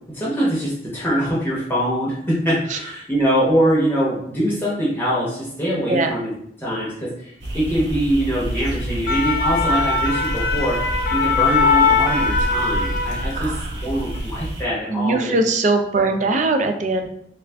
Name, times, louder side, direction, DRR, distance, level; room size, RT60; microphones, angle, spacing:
voice 1, 0.1-6.3 6.6-13.5 13.8-15.3, equal, 10° left, -7 dB, 0.9 m, -23 dB
sound 1, 7.4-14.6, right 1 dB, 70° right, 0.8 m, -28 dB
sound 2, 8.8-13.6 13.9-14.2, left 4 dB, 60° left, 0.4 m, -21 dB
voice 2, 13.3-13.7 14.9-17.1, right 3 dB, 40° right, 6 dB, 0.3 m, -21 dB
3.3 x 2.4 x 3.3 m, 0.70 s
head